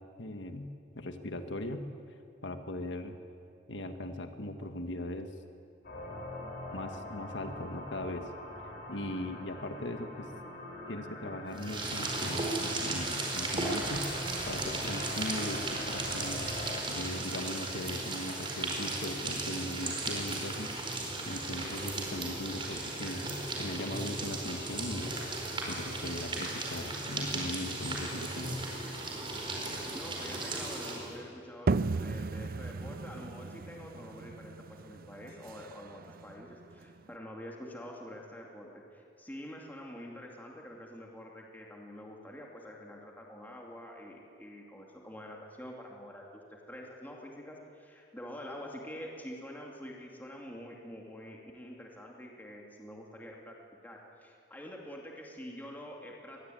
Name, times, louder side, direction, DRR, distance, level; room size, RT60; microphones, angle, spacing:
voice 1, 0.2-0.7 0.9-1.9 2.4-3.1 3.7-5.3 6.7-8.3 8.9-10.3 10.9-14.1 14.4-25.2 25.7-28.6, left 1 dB, 90° left, 7 dB, 1.5 m, -39 dB
sound 1, 5.8-16.8, left 1 dB, 60° left, 6.4 m, -44 dB
sound 2, 11.5-31.2, right 2 dB, 30° right, 4.7 m, -36 dB
voice 2, 29.7-53.6 53.8-56.5, equal, 10° left, -1 dB, 2.5 m, -46 dB
sound 3, 31.7-37.1, right 3 dB, 55° right, 0.5 m, -35 dB
25.0 x 20.5 x 9.3 m, 2.6 s
head